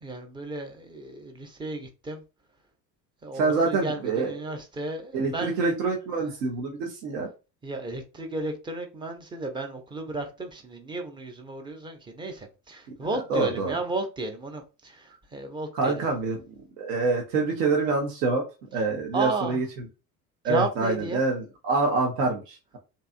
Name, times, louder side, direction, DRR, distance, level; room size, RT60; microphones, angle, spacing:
voice 1, 0.0-2.2 3.2-5.5 7.6-15.9 19.1-19.6 20.4-21.2, right 3 dB, 10° right, 0.4 m, -33 dB
voice 2, 3.3-4.3 5.1-7.3 13.3-13.7 15.7-16.4 16.8-18.4 18.7-19.8 20.4-22.8, right 3 dB, 70° right, 0.8 m, -26 dB
2.7 x 2.3 x 2.4 m
figure-of-eight pair, 65°, 49 cm